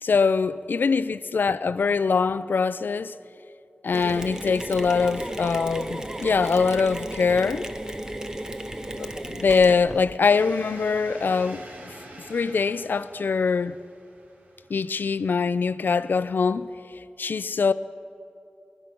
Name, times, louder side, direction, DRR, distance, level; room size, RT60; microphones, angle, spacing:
voice 1, 0.0-3.1 3.8-7.7 9.0-11.9 12.3-13.8 14.7-16.7 17.2-17.7, left 5 dB, 75° left, 0.5 m, -23 dB
Mechanisms, 3.9-10.2, right 1 dB, 20° right, 1.0 m, -34 dB
sound 1, 10.3-16.7, right 1 dB, 55° right, 2.0 m, -46 dB
23.5 x 10.5 x 6.0 m
wide cardioid pair, 65°, 3 cm